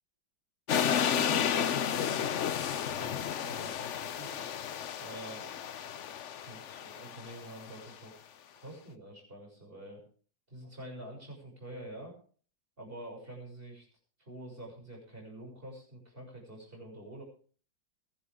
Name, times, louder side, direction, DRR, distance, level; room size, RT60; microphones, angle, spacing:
sound 1, 0.7-7.8, left 8 dB, 60° left, 0.8 m, -32 dB
voice 1, 0.7-1.4 1.7-4.5 5.0-5.5 6.5-10.0 10.5-12.1 12.8-13.9 14.2-17.2, right 1 dB, 30° right, 0 dB, 7.0 m, -47 dB
22.0 x 12.0 x 3.6 m, 0.43 s
omnidirectional pair, 2.0 m